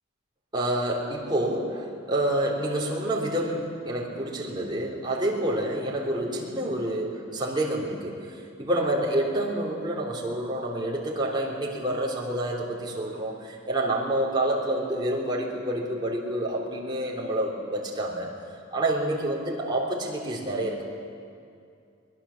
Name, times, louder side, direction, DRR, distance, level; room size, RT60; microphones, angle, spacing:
voice 1, 0.5-8.2 8.6-18.3 18.7-20.9, right 1 dB, 25° right, -3 dB, 3.5 m, -28 dB
23.5 x 19.5 x 7.3 m, 2.4 s
head